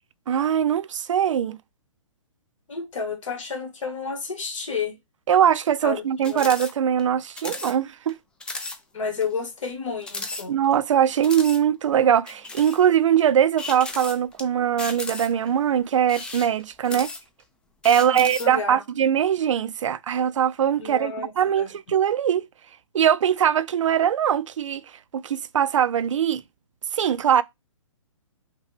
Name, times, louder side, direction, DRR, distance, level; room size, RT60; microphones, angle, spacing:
voice 1, 0.3-1.6 5.3-8.2 10.5-17.1 17.8-22.5 22.9-24.8 25.1-26.4 26.9-27.4, right 9 dB, 65° right, 0.4 m, -21 dB
voice 2, 2.7-5.0 5.8-6.0 6.2-6.5 8.9-10.6 16.9-17.0 18.0-18.8 20.8-21.7, left 5 dB, 70° left, 1.6 m, -31 dB
sound 1, 6.2-6.7 7.0-7.1 7.4-7.7 8.1-8.2 8.4-8.8 9.2-9.3 10.0-10.8 11.2-11.6 12.3-12.8 13.6-14.4 14.8-15.5 16.0-17.4 17.8-18.5, left 3 dB, 5° left, 0.3 m, -35 dB
5.8 x 2.2 x 3.3 m
hypercardioid pair, 135°, 17 cm